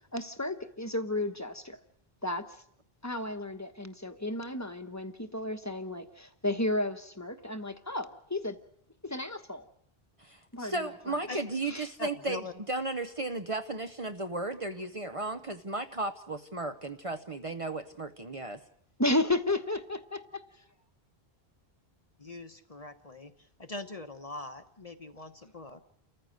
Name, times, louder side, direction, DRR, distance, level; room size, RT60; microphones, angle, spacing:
voice 1, 0.1-1.8 2.2-2.4 3.0-8.6 9.0-9.7 10.5-11.2 11.7-11.9 19.0-20.4, left 2 dB, 15° left, 7 dB, 1.2 m, -33 dB
voice 2, 10.2-18.6, right 2 dB, 35° right, 7 dB, 0.9 m, -35 dB
voice 3, 12.0-12.5 22.2-23.3 23.6-25.9, left 2 dB, 40° left, 8 dB, 1.1 m, -42 dB
29.5 x 14.5 x 6.5 m, 0.69 s
omnidirectional pair, 1.0 m